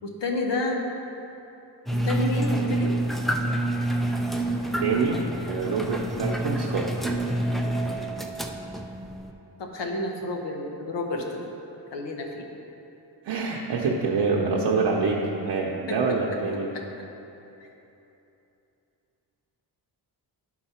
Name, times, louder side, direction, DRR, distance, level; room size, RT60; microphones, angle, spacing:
voice 1, 0.0-1.0 2.0-3.0 9.6-11.5 11.9-12.4 15.9-16.0 16.7-16.8 17.6-17.7, left 2 dB, 80° left, 1 dB, 1.1 m, -30 dB
sound 1, 1.9-9.3, right 1 dB, ahead, 0.4 m, -27 dB
voice 2, 4.8-6.9 13.2-16.7, right 4 dB, 75° right, -3 dB, 0.8 m, -26 dB
11.5 x 4.2 x 4.3 m, 3.0 s
wide cardioid pair, 105°, 42 cm